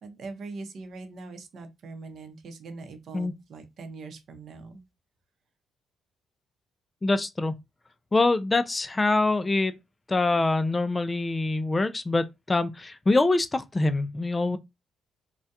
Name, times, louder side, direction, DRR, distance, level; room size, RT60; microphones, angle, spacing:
voice 1, 0.0-4.8, right 3 dB, 60° right, 0.6 m, -42 dB
voice 2, 7.0-7.6 8.1-9.8 10.1-14.6, left 2 dB, 20° left, 0.3 m, -24 dB
2.3 x 2.1 x 2.7 m
cardioid pair, 90°, 0 cm